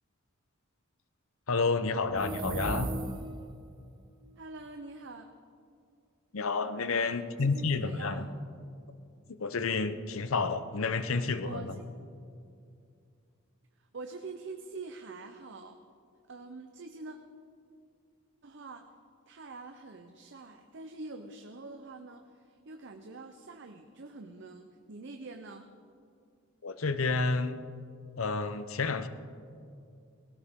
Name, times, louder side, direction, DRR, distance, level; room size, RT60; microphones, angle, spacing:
voice 1, 1.5-2.9 6.3-8.2 9.3-11.7 26.6-27.6 28.2-29.1, left 4 dB, 75° left, 11 dB, 0.7 m, -30 dB
sound 1, 2.1-3.6, right 2 dB, 20° right, 0.4 m, -35 dB
voice 2, 4.4-5.3 6.9-8.3 11.1-11.8 13.8-15.8 16.3-17.2 18.4-18.9 19.3-25.7, right 3 dB, 60° right, 5 dB, 0.7 m, -45 dB
18.5 x 17.0 x 3.7 m, 2.4 s
head